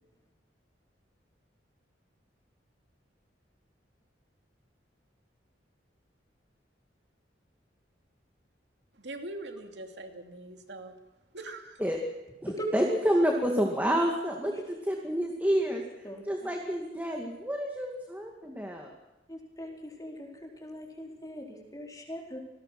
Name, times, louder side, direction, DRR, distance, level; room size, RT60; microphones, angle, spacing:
voice 1, 9.0-10.9 11.3-11.8, right 2 dB, 70° right, 4 dB, 2.8 m, -42 dB
voice 2, 12.7-14.5 14.9-15.8 16.3-18.9, equal, 10° right, 1 dB, 2.3 m, -28 dB
voice 3, 16.0-16.5 19.3-22.4, equal, 20° left, 0 dB, 4.5 m, -40 dB
28.0 x 19.5 x 6.1 m, 1.1 s
head